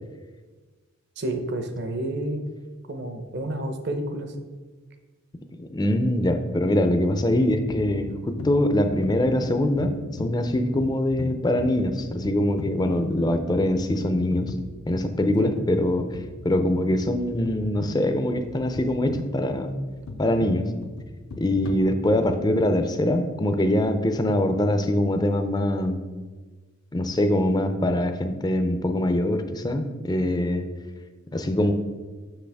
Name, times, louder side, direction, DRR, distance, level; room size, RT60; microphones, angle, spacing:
voice 1, 1.2-2.5 2.9-4.4 15.4-15.6, right 1 dB, 50° right, 7 dB, 0.8 m, -30 dB
voice 2, 5.6-9.9 10.2-14.5 14.9-16.1 16.4-19.8 20.2-20.7 21.4-26.0 26.9-30.7 31.3-31.7, left 1 dB, 20° left, 8 dB, 0.4 m, -23 dB
sound 1, 7.1-22.5, left 2 dB, 75° left, 0.6 m, -39 dB
7.7 x 6.4 x 3.5 m, 1.4 s
head